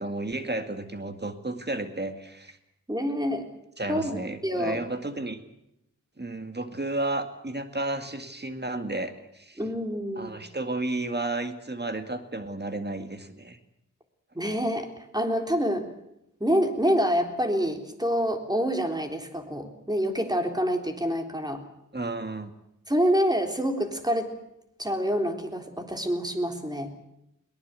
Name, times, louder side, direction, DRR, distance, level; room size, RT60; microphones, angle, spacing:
voice 1, 0.0-2.6 3.8-5.4 6.2-9.6 10.2-13.6 21.9-22.5, right 2 dB, 35° right, 7 dB, 2.0 m, -32 dB
voice 2, 2.9-3.5 3.9-4.8 9.6-10.3 14.4-15.8 16.4-21.6 22.9-24.3 24.8-26.9, equal, 15° right, 4 dB, 3.7 m, -27 dB
22.5 x 19.0 x 8.2 m, 0.82 s
wide cardioid pair, 70°, 31 cm